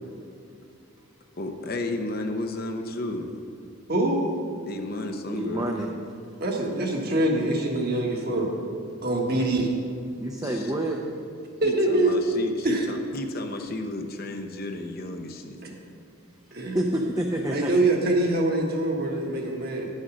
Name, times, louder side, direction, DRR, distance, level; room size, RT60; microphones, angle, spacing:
voice 1, 1.3-3.3 4.7-5.7 10.4-10.7 11.6-15.6, left 2 dB, 45° left, 5 dB, 0.7 m, -33 dB
voice 2, 5.3-5.9 10.2-11.0 16.7-17.7, right 1 dB, 15° right, 0 dB, 0.6 m, -28 dB
voice 3, 6.4-8.5 9.0-9.7 11.6-12.2 12.6-12.8 15.6-15.7 16.5-16.8 17.5-19.9, right 2 dB, 45° right, 0 dB, 1.4 m, -24 dB
10.5 x 6.5 x 6.3 m, 2.4 s
head